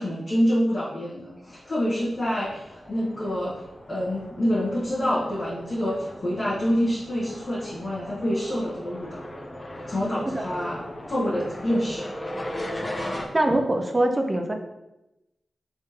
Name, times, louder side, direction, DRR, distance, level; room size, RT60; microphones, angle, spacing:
voice 1, 0.0-3.6 3.9-9.2 9.9-10.8 11.1-12.1, equal, 50° left, -10 dB, 1.3 m, -26 dB
sound 1, 1.5-13.2, left 1 dB, 25° left, 0.7 m, -38 dB
voice 2, 13.3-14.5, right 1 dB, 30° right, 4 dB, 0.5 m, -23 dB
3.6 x 3.3 x 2.8 m, 0.94 s
cardioid pair, 45°, 0 cm